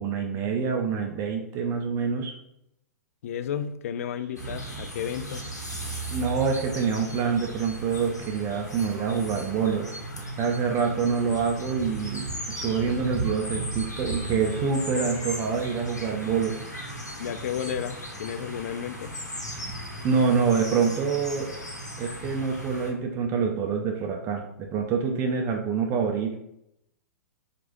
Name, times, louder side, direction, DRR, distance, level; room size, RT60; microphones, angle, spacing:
voice 1, 0.0-2.3 6.1-10.0 10.4-16.6 20.0-21.6 22.0-26.4, right 6 dB, 30° right, 2 dB, 0.5 m, -26 dB
voice 2, 3.2-5.4 17.2-19.2, left 9 dB, 55° left, 11 dB, 0.3 m, -32 dB
sound 1, 4.4-22.9, right 1 dB, 85° left, 1.0 m, -36 dB
4.6 x 2.5 x 2.9 m, 0.79 s
figure-of-eight pair, 105°, 9 cm